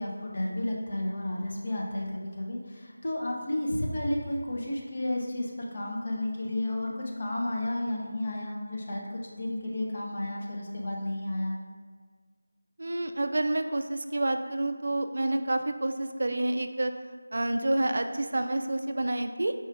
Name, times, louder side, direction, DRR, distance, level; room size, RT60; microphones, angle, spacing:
voice 1, 0.0-11.5, left 1 dB, 45° left, -2 dB, 0.8 m, -32 dB
voice 2, 12.8-16.9 17.3-19.5, right 2 dB, 55° right, 7 dB, 0.3 m, -28 dB
4.3 x 2.4 x 4.6 m, 1.5 s
figure-of-eight pair, 165°, 0 cm